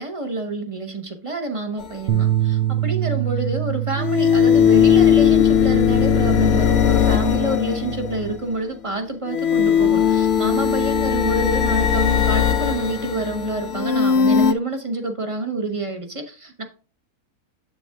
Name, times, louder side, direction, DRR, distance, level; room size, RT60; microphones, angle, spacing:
voice 1, 0.0-16.6, right 2 dB, 25° right, 5 dB, 0.8 m, -28 dB
sound 1, 1.8-1.9 4.0-8.4 9.3-14.5, left 8 dB, 65° left, 0.6 m, -18 dB
sound 2, 2.1-8.3, right 13 dB, 70° right, 0.9 m, -26 dB
8.1 x 7.6 x 2.3 m, 0.37 s
omnidirectional pair, 1.7 m